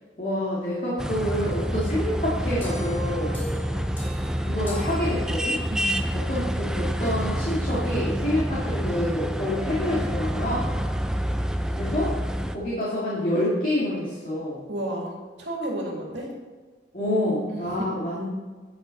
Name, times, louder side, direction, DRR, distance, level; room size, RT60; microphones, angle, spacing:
voice 1, 0.2-3.4 4.4-5.6 6.3-10.7 11.7-12.1 12.5-14.7 16.9-18.3, left 1 dB, 45° left, -7 dB, 2.2 m, -27 dB
sound 1, 1.0-12.6, equal, 5° right, 0.4 m, -27 dB
sound 2, 2.6-5.9, right 1 dB, 15° left, 3.4 m, -41 dB
voice 2, 14.7-15.1 15.4-16.3 17.5-17.9, right 1 dB, 75° right, -2 dB, 2.6 m, -32 dB
10.0 x 8.2 x 4.0 m, 1.4 s
head